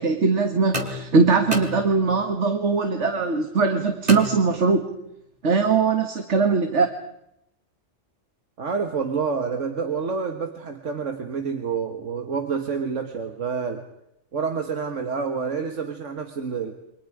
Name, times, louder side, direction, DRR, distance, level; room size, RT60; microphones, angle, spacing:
voice 1, 0.0-4.9 5.4-6.9, right 4 dB, 70° right, 6 dB, 2.0 m, -21 dB
sound 1, 0.7-2.4 4.1-5.0, left 1 dB, 35° right, 2.9 m, -32 dB
voice 2, 8.6-13.8 14.3-16.8, right 5 dB, 90° right, 5 dB, 2.0 m, -28 dB
28.5 x 25.0 x 5.0 m, 0.80 s
omnidirectional pair, 1.2 m